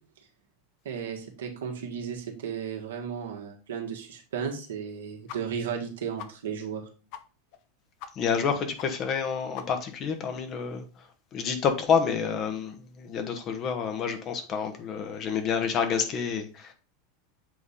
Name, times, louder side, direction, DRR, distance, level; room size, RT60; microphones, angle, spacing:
voice 1, 0.8-6.9, right 7 dB, 75° right, 1.6 m, -34 dB
sound 1, 5.3-5.4 5.7-5.8 6.2-6.3 6.7-6.8 7.1-7.2 7.5-7.6 8.0-8.1 8.4-8.5 8.8-8.9 9.2-9.3 9.5-10.0, left 9 dB, 55° left, 0.8 m, -42 dB
voice 2, 8.1-10.9 11.3-16.7, left 6 dB, 40° left, 1.3 m, -28 dB
7.7 x 4.1 x 3.7 m
hypercardioid pair, 90°, 0 cm